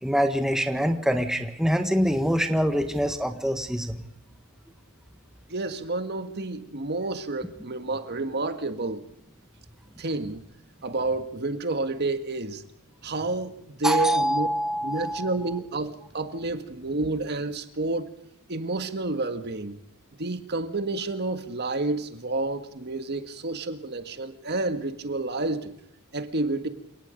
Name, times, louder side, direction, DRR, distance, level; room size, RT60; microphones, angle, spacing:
voice 1, 0.0-3.9 13.8-15.3, equal, ahead, 1.6 m, -25 dB
voice 2, 5.5-9.0 10.0-10.4 10.8-12.6 13.0-14.5 14.8-18.1 18.5-19.8 20.2-25.7 26.1-26.7, right 2 dB, 50° right, 1.7 m, -30 dB
28.5 x 18.0 x 5.2 m
head